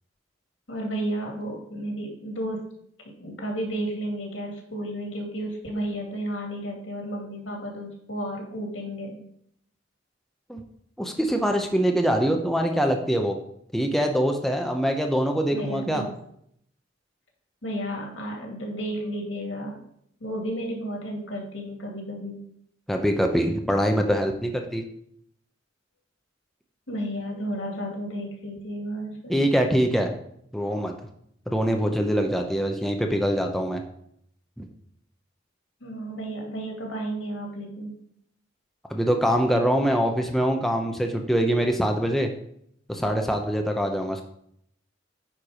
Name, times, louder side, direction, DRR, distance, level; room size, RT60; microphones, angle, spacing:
voice 1, 0.7-2.6 3.2-9.2 15.5-16.1 17.6-19.8 20.2-22.4 26.9-29.4 35.8-37.9, right 1 dB, 80° left, 0 dB, 2.4 m, -32 dB
voice 2, 11.0-13.4 13.7-16.0 22.9-24.8 29.3-30.1 30.5-30.9 31.5-33.8 34.6-34.7 38.9-42.3 42.9-44.2, equal, ahead, 3 dB, 0.7 m, -24 dB
9.6 x 4.5 x 5.0 m, 0.70 s
head